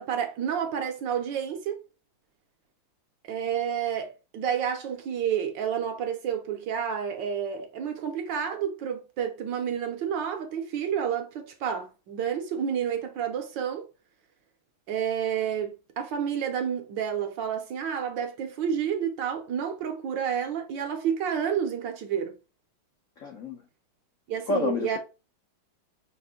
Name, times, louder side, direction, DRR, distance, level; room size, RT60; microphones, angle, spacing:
voice 1, 0.0-1.8 3.2-13.9 14.9-22.4 24.3-25.0, right 8 dB, 70° right, 1.2 m, -30 dB
voice 2, 23.2-23.6 24.5-25.0, left 3 dB, 65° left, 0.7 m, -29 dB
5.4 x 2.6 x 3.6 m
omnidirectional pair, 2.4 m